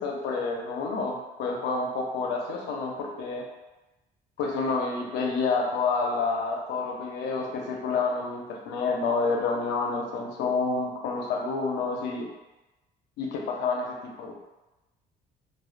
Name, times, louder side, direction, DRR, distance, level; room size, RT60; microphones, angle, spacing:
voice 1, 0.0-3.4 4.4-12.3 13.2-14.4, left 4 dB, 90° left, 0 dB, 0.5 m, -29 dB
2.4 x 2.2 x 2.4 m, 1.1 s
cardioid pair, 110°, 17 cm